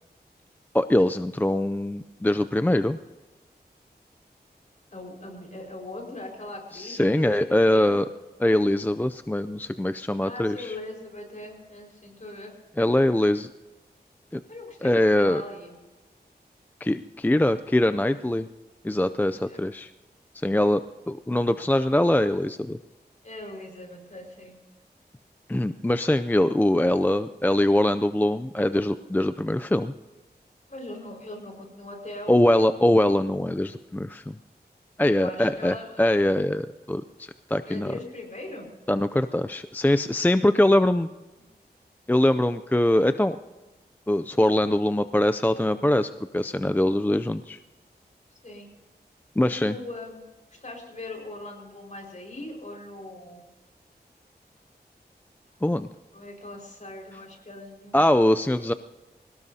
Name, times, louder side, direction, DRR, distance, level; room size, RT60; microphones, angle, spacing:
voice 1, 0.7-3.0 6.7-8.1 8.4-10.8 12.8-13.5 14.3-14.4 14.8-15.4 16.8-18.5 18.8-19.9 20.3-20.8 21.1-22.8 25.5-29.9 32.3-34.4 35.0-38.0 38.9-41.1 42.1-43.4 44.1-47.6 49.4-49.8 55.6-55.9 57.9-58.7, left 1 dB, 10° left, 10 dB, 0.4 m, -23 dB
voice 2, 4.9-8.0 10.2-12.5 14.5-15.7 19.2-19.6 21.8-22.0 23.2-24.6 30.7-32.8 35.0-36.0 37.7-38.7 48.4-48.7 49.6-50.2 50.6-53.4 56.1-58.1, left 2 dB, 45° left, 0 dB, 5.1 m, -40 dB
25.5 x 18.0 x 2.8 m, 1.2 s
wide cardioid pair, 85°, 17 cm